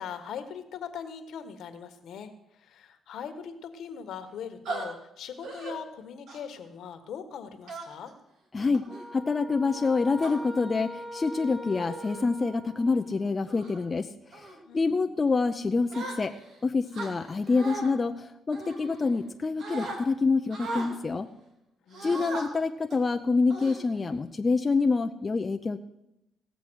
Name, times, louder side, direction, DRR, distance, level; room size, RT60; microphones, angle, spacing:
voice 1, 0.0-2.3 2.6-8.1 14.6-15.0 21.9-22.6, left 7 dB, 70° left, 8 dB, 1.4 m, -41 dB
sound 1, 4.7-4.9 5.4-5.8 6.3-6.6 7.7-8.1 8.7-9.0 9.8-10.3 11.2-11.4 11.9-12.2 12.7-13.0 13.5-13.8 14.3-14.6 15.9-16.5 16.9-17.9 18.5-19.3 19.6-20.0 20.5-20.9 21.9-22.4 22.9-23.1 23.5-24.2, right 2 dB, 70° right, 2.6 m, -38 dB
voice 2, 8.5-16.3 16.6-21.3 22.0-25.8, left 4 dB, 30° left, 5 dB, 0.6 m, -27 dB
sound 2, 8.9-13.3, equal, 10° right, 2.1 m, -42 dB
17.0 x 7.1 x 6.3 m, 0.86 s
cardioid pair, 90°, 0 cm